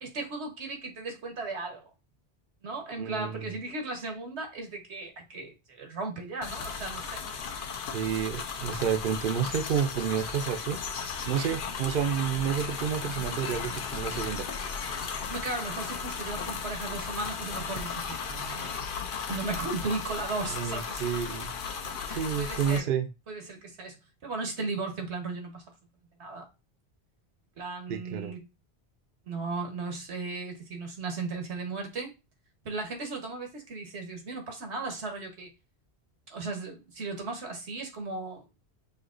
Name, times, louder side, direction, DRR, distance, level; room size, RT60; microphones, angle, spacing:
voice 1, 0.0-1.9 2.6-7.2 15.3-18.8 19.3-21.0 22.1-22.9 23.3-25.6 26.2-26.4 27.6-28.4 29.3-32.1 32.6-35.5 36.3-38.4, right 3 dB, 85° right, 1.5 m, -36 dB
voice 2, 3.0-3.5 7.9-10.8 11.2-14.5 20.5-21.5 22.1-23.1 27.9-28.4, right 8 dB, 60° right, 0.7 m, -30 dB
sound 1, 6.4-22.8, left 5 dB, 55° left, 0.8 m, -36 dB
6.3 x 2.8 x 2.5 m
omnidirectional pair, 1.1 m